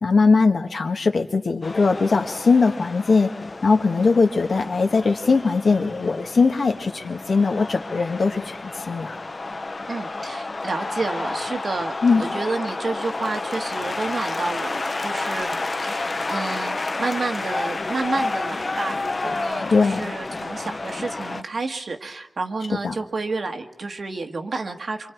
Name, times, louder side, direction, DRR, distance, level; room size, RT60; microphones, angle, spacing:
voice 1, 0.0-3.3 3.6-9.2 12.0-12.2 19.7-20.1 22.8-22.9, left 4 dB, 75° left, 5 dB, 1.6 m, -20 dB
sound 1, 1.6-21.4, left 3 dB, 45° left, 0.7 m, -30 dB
voice 2, 9.9-25.1, right 3 dB, 70° right, 5 dB, 1.7 m, -30 dB
28.5 x 25.0 x 4.6 m, 1.1 s
wide cardioid pair, 105°, 0 cm